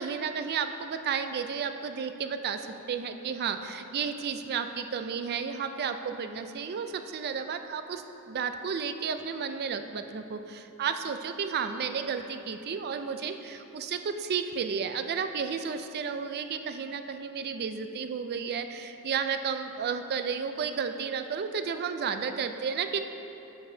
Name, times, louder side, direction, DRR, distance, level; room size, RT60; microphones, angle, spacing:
voice 1, 0.0-23.0, right 6 dB, 45° right, 8 dB, 0.4 m, -32 dB
10.0 x 6.7 x 2.7 m, 3.0 s
head